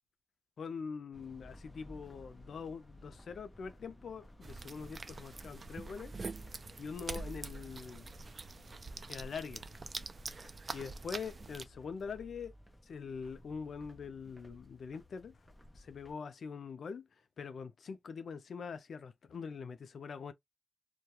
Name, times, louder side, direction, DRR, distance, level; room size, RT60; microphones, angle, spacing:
voice 1, 0.6-6.1 6.8-8.1 9.1-9.6 10.7-12.5 12.8-15.4 15.8-17.1 17.4-20.3, left 5 dB, 80° left, 0.4 m, -43 dB
sound 1, 1.1-16.1, left 1 dB, 15° left, 0.6 m, -57 dB
sound 2, 4.4-11.6, right 3 dB, 40° right, 0.3 m, -45 dB
2.3 x 2.1 x 2.8 m
wide cardioid pair, 140°, 0 cm